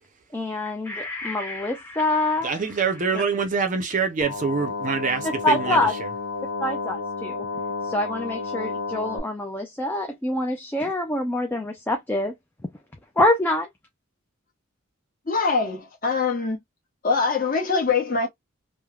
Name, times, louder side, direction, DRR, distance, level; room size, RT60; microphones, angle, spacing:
voice 1, 0.3-2.5 3.1-3.2 5.2-5.9 6.6-7.4 7.8-12.3 13.2-13.7, left 2 dB, 10° left, 0.4 m, -25 dB
voice 2, 2.4-5.8, right 5 dB, 35° right, 0.5 m, -25 dB
sound 1, 4.2-9.2, left 4 dB, 75° left, 0.8 m, -31 dB
voice 3, 15.3-16.6 17.0-18.3, left 4 dB, 40° left, 1.1 m, -23 dB
3.2 x 2.1 x 2.3 m
head